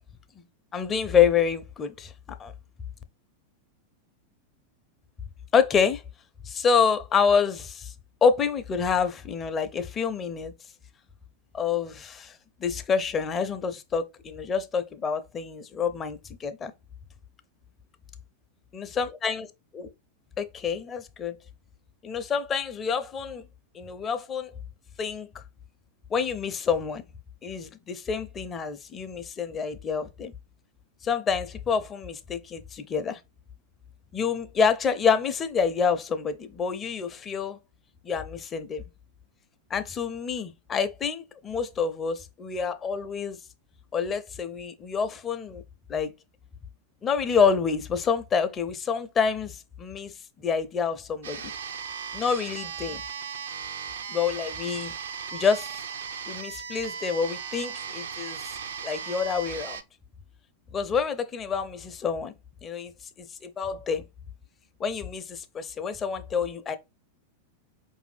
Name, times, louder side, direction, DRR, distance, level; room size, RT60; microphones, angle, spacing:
voice 1, 0.7-2.1 2.4-2.5 5.5-6.0 6.4-7.9 8.2-10.5 11.5-12.3 12.6-16.7 18.7-19.5 19.7-19.9 20.4-21.4 22.0-23.4 23.7-24.5 25.0-25.4 26.1-27.0 27.4-30.3 31.0-33.2 34.1-37.6 38.0-38.8 39.7-43.4 43.9-45.6 45.9-46.1 47.0-51.4 52.1-53.0 54.1-54.9 55.3-55.7 56.3-58.6 58.8-59.8 60.7-62.3 62.6-62.9 63.2-64.0 64.8-66.8, left 6 dB, 25° left, 0.6 m, -27 dB
sound 1, 51.2-59.8, right 7 dB, 65° right, 0.5 m, -37 dB
4.9 x 2.7 x 3.2 m
figure-of-eight pair, 90°, 0 cm